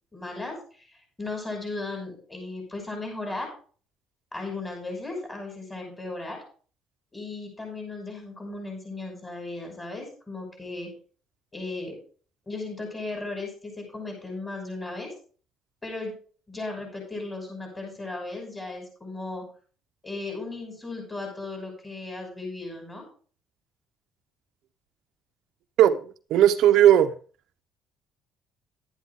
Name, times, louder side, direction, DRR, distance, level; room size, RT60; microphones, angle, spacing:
voice 1, 0.1-3.5 4.3-6.4 7.1-10.9 11.5-12.0 12.5-15.1 15.8-16.2 16.5-19.5 20.0-23.1, left 2 dB, 15° left, 5.9 m, -36 dB
voice 2, 26.3-27.1, right 11 dB, 65° right, 0.7 m, -16 dB
12.0 x 10.5 x 3.6 m
cardioid pair, 125°, 0 cm